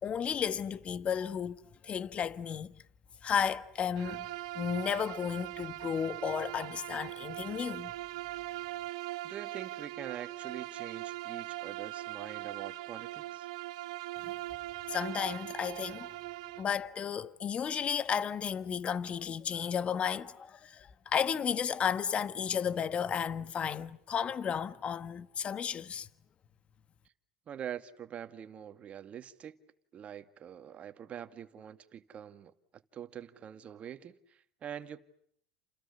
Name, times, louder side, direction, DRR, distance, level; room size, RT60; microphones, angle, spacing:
voice 1, 0.0-1.6 1.8-2.7 3.2-4.3 4.5-7.9 14.9-16.1 16.6-26.1, left 7 dB, 35° left, 1.4 m, -33 dB
Bowed string instrument, 4.0-16.7, right 17 dB, 75° right, 1.3 m, -41 dB
voice 2, 9.2-13.5 27.5-29.6 29.9-35.0, right 9 dB, 40° right, 2.1 m, -45 dB
30.0 x 28.5 x 7.0 m
supercardioid pair, 95°, 3 cm